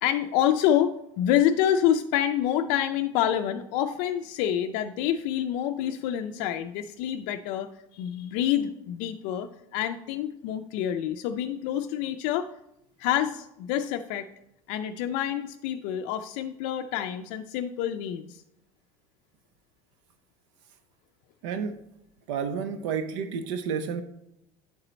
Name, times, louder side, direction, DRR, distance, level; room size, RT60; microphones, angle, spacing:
voice 1, 0.0-12.5 13.0-14.3 14.7-18.4, left 10 dB, 60° left, 6 dB, 0.4 m, -27 dB
voice 2, 21.4-21.8 22.3-24.0, right 6 dB, 90° right, 9 dB, 0.6 m, -30 dB
9.7 x 4.3 x 4.0 m, 0.83 s
cardioid pair, 165°, 15 cm